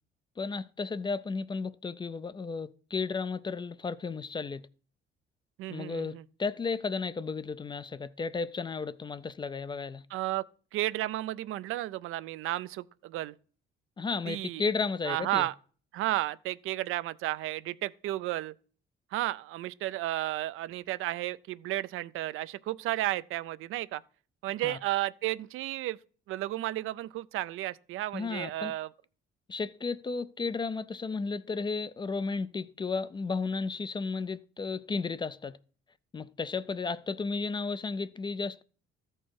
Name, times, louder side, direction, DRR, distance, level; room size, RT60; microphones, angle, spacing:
voice 1, 0.4-4.6 5.7-10.0 14.0-15.5 24.6-24.8 28.1-28.7 29.5-35.6 36.1-38.6, left 4 dB, 20° left, 0.3 m, -33 dB
voice 2, 5.6-6.2 10.1-10.4 10.7-13.3 14.3-14.6 15.1-15.5 15.9-18.5 19.1-24.0 24.4-26.0 26.3-28.9, right 15 dB, 75° right, 0.4 m, -33 dB
13.5 x 4.5 x 4.6 m
cardioid pair, 105°, 21 cm